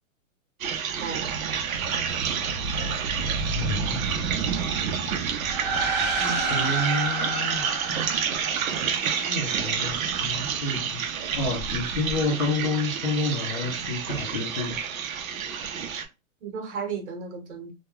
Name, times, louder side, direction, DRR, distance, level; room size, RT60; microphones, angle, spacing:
sound 1, 0.6-16.0, right 6 dB, 75° right, 0.6 m, -29 dB
voice 1, 1.0-1.4 1.9-2.4 16.4-17.7, right 6 dB, 55° right, 1.0 m, -35 dB
voice 2, 3.6-4.0 6.2-7.7 9.3-11.0 11.4-14.8, left 2 dB, 30° left, 0.4 m, -29 dB
sound 2, 5.5-9.1, right 4 dB, 35° right, 0.4 m, -29 dB
2.3 x 2.2 x 3.0 m
hypercardioid pair, 165°, 41 cm